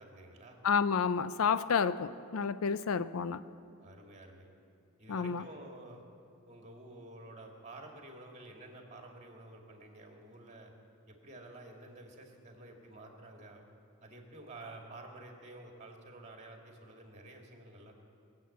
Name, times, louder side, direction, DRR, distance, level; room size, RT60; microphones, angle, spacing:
voice 1, 0.0-0.6 3.8-4.5 5.0-6.0 6.5-10.7 11.1-13.6 14.0-17.9, right 2 dB, 30° right, 2.3 m, -51 dB
voice 2, 0.6-3.4 5.1-5.5, left 6 dB, 65° left, 0.5 m, -30 dB
21.0 x 7.8 x 8.5 m
head